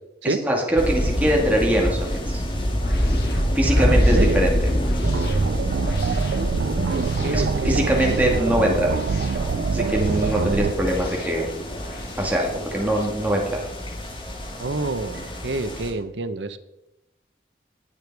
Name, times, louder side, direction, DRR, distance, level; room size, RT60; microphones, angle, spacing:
voice 1, 0.2-2.4 3.5-4.7 7.3-9.0 9.7-11.5 12.2-13.6, right 1 dB, 10° right, -1 dB, 2.1 m, -22 dB
sound 1, 0.8-15.9, equal, 30° left, 2.2 m, -26 dB
sound 2, 2.8-13.1, left 1 dB, 60° left, 2.0 m, -38 dB
voice 2, 3.7-4.5 6.6-8.2 14.6-16.6, right 2 dB, 85° right, 11 dB, 0.9 m, -28 dB
sound 3, 5.0-10.7, right 5 dB, 65° right, 0.3 m, -25 dB
19.5 x 6.9 x 4.7 m, 0.91 s
head